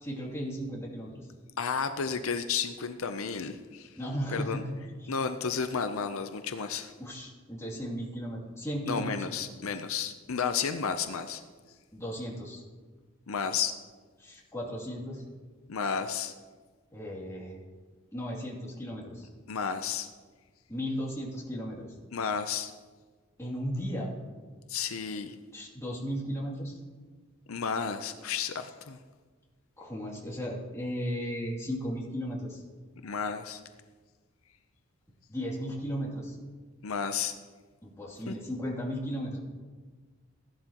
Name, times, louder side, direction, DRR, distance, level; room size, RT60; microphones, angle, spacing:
voice 1, 0.0-1.3 4.0-4.6 5.0-5.1 7.0-9.1 9.4-9.6 11.9-12.6 14.2-15.2 16.9-17.6 18.1-19.3 20.7-21.9 23.4-24.1 25.5-26.8 29.8-32.6 35.3-36.4 37.8-39.4, equal, 15° left, -4 dB, 2.6 m, -35 dB
voice 2, 1.6-3.9 4.3-4.6 5.1-6.9 8.9-11.4 13.3-13.8 15.7-16.3 19.5-20.1 22.1-22.7 24.7-25.4 27.5-29.0 33.0-33.6 36.8-37.3 38.3-38.4, left 6 dB, 80° left, 9 dB, 0.6 m, -32 dB
16.5 x 11.5 x 3.0 m, 1.4 s
head